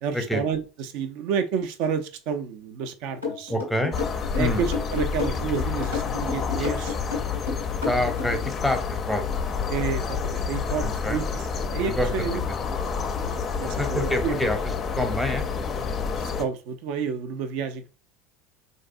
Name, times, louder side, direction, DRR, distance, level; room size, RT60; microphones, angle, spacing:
voice 1, 0.0-3.5 4.3-7.0 9.7-12.4 12.9-14.4 16.2-17.9, right 6 dB, 55° right, 10 dB, 0.4 m, -30 dB
sound 1, 3.2-8.5, left 4 dB, 90° right, 1.3 m, -31 dB
voice 2, 3.5-3.9 4.4-4.7 6.6-6.7 7.8-9.3 10.8-11.2 11.9-12.7 13.8-15.5, left 1 dB, ahead, 5 dB, 0.8 m, -27 dB
sound 2, 3.9-16.4, left 5 dB, 30° left, 0.4 m, -29 dB
3.9 x 2.6 x 2.6 m, 0.35 s
figure-of-eight pair, 70°, 0 cm